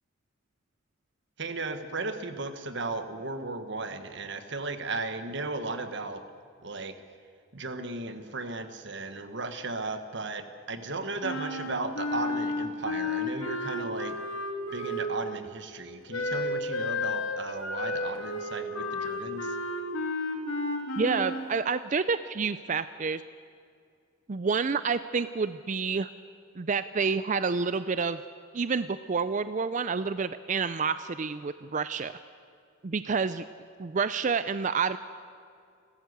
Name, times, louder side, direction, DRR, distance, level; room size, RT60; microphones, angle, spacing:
voice 1, 1.4-6.2 6.6-6.9 7.5-14.2 14.7-19.6, right 3 dB, 55° right, 9 dB, 1.5 m, -35 dB
Wind instrument woodwind instrument, 11.2-15.4 16.1-21.5, left 2 dB, 90° left, 2.8 m, -32 dB
voice 2, 21.0-23.2 24.3-26.1 26.6-28.2 28.5-32.1 32.8-33.4 33.8-35.0, right 5 dB, 35° right, 13 dB, 0.4 m, -28 dB
29.5 x 13.0 x 8.1 m, 2.3 s
head